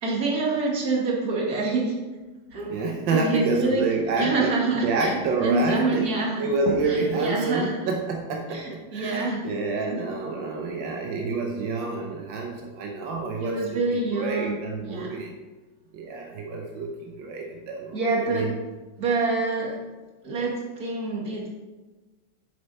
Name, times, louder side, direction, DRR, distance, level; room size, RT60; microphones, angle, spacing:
voice 1, 0.0-1.9 2.5-3.8 4.2-6.4 6.8-7.8 8.5-9.4 9.9-10.0 13.4-15.1 17.9-18.5 19.0-19.8 20.2-21.5, right 3 dB, 55° right, -3 dB, 2.4 m, -26 dB
voice 2, 2.7-4.5 4.8-15.3 15.9-18.5, right 3 dB, 90° right, 2 dB, 1.6 m, -28 dB
8.5 x 7.0 x 4.1 m, 1.2 s
omnidirectional pair, 2.0 m